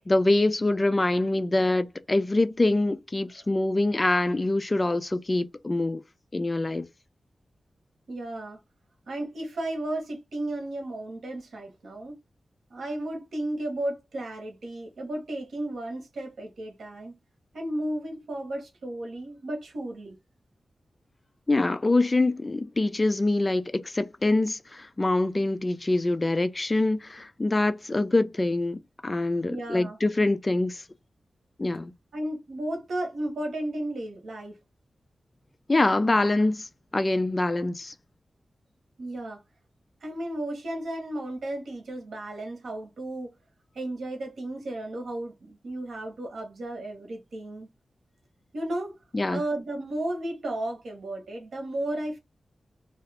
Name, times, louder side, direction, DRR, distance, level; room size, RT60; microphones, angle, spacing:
voice 1, 0.1-6.0 6.3-6.9 21.5-30.8 31.6-31.9 35.7-37.9 49.1-49.4, left 2 dB, 25° left, 0.3 m, -25 dB
voice 2, 8.1-8.6 9.1-12.2 12.7-17.2 17.5-20.2 29.5-30.0 32.1-34.6 39.0-39.4 40.0-43.3 43.7-47.7 48.5-49.0 49.3-52.2, right 1 dB, 90° right, 1.0 m, -34 dB
2.7 x 2.4 x 3.2 m
wide cardioid pair, 130°, 0 cm